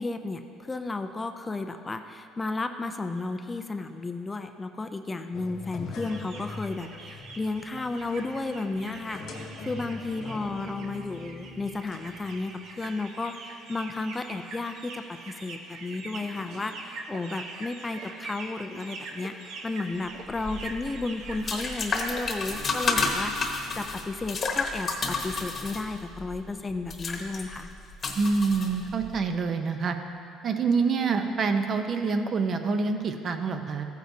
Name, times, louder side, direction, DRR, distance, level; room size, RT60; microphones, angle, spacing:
voice 1, 0.0-27.7, left 3 dB, 20° left, 7 dB, 0.4 m, -33 dB
sound 1, 5.3-12.9, left 3 dB, 60° left, 0.9 m, -43 dB
sound 2, 5.9-22.4, right 3 dB, 65° right, 0.9 m, -43 dB
sound 3, 20.3-29.2, left 4 dB, 35° left, 1.1 m, -31 dB
voice 2, 28.1-30.0 30.4-33.9, right 4 dB, 40° right, 6 dB, 0.7 m, -26 dB
14.5 x 9.1 x 2.7 m, 2.5 s
cardioid pair, 130°, 0 cm